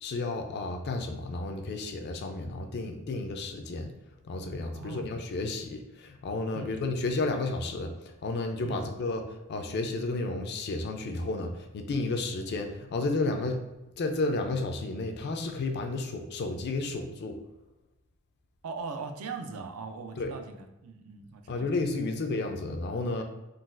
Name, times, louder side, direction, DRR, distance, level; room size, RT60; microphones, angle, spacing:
voice 1, 0.0-3.9 4.3-7.9 8.2-9.2 9.5-13.6 14.0-17.4 20.2-20.3 21.5-23.2, left 2 dB, 50° left, 5 dB, 0.4 m, -32 dB
voice 2, 4.7-5.1 6.5-6.8 8.6-8.9 18.6-21.7 22.1-22.2, right 4 dB, 75° right, 6 dB, 0.4 m, -40 dB
3.9 x 2.3 x 2.4 m, 1.0 s
head